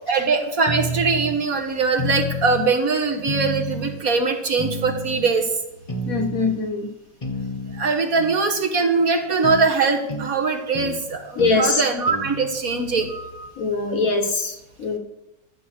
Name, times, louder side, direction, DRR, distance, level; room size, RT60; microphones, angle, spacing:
voice 1, 0.1-5.5 7.7-13.5, right 4 dB, 55° right, 3 dB, 1.8 m, -22 dB
sound 1, 0.7-1.4 2.0-2.7 3.3-4.0 4.6-5.3 5.9-6.6 7.2-7.9 9.4-9.6 10.1-10.3 10.7-11.0 11.4-11.6 12.1-12.3, equal, 20° left, 1.3 m, -29 dB
voice 2, 6.1-6.9 11.4-11.8 13.6-15.0, left 3 dB, 50° left, 5 dB, 1.6 m, -22 dB
12.5 x 7.6 x 6.6 m, 0.92 s
omnidirectional pair, 1.9 m